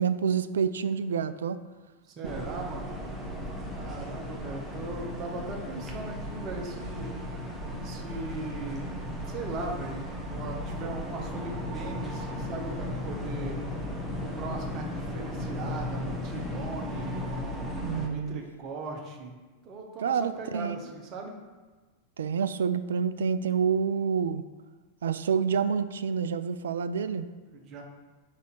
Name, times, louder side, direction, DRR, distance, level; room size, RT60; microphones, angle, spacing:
voice 1, 0.0-1.6 17.8-18.4 20.0-20.8 22.2-24.4 25.0-27.3, right 6 dB, 65° right, 13 dB, 0.3 m, -28 dB
voice 2, 2.1-2.9 3.7-7.1 7.8-8.9 9.3-13.6 14.2-17.7 18.1-19.3 19.6-21.4 27.5-27.8, right 3 dB, 35° right, 1 dB, 1.1 m, -39 dB
sound 1, 2.2-18.1, left 1 dB, 5° right, 1.1 m, -35 dB
5.3 x 4.1 x 6.1 m, 1.3 s
figure-of-eight pair, 90°, 0 cm